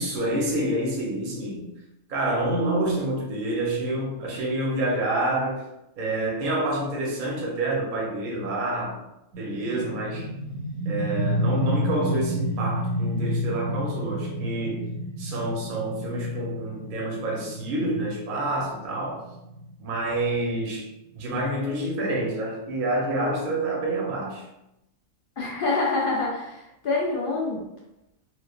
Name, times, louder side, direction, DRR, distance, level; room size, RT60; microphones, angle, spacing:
voice 1, 0.0-1.7 2.1-5.6 6.0-9.0 9.4-10.3 10.8-14.9 15.2-19.2 19.8-20.9 21.1-24.4, right 1 dB, 50° right, -2 dB, 0.7 m, -28 dB
sound 1, 9.3-20.8, right 1 dB, 75° right, 1.0 m, -30 dB
voice 2, 25.4-27.6, left 3 dB, 65° left, -4 dB, 0.5 m, -26 dB
3.1 x 2.1 x 2.3 m, 0.89 s
omnidirectional pair, 1.4 m